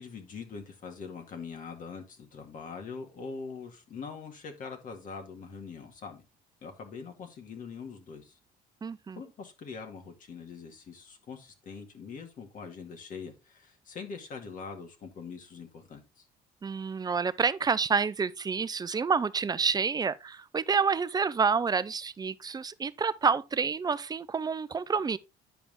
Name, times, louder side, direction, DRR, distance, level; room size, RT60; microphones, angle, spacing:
voice 1, 0.0-6.2 6.6-8.3 9.2-16.2, left 5 dB, 50° left, 2.2 m, -43 dB
voice 2, 8.8-9.2 16.6-25.2, right 5 dB, 25° right, 0.6 m, -28 dB
10.0 x 5.0 x 3.6 m
cardioid pair, 110°, 17 cm